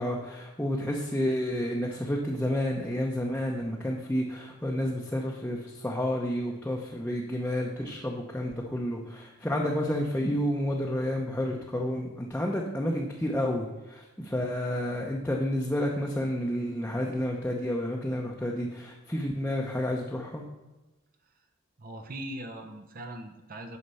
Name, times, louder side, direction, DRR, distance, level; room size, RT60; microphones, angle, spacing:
voice 1, 0.0-20.4, left 1 dB, 10° left, -2 dB, 0.8 m, -30 dB
voice 2, 21.8-23.8, right 1 dB, 45° right, 4 dB, 0.8 m, -40 dB
9.6 x 5.8 x 5.6 m, 1.1 s
head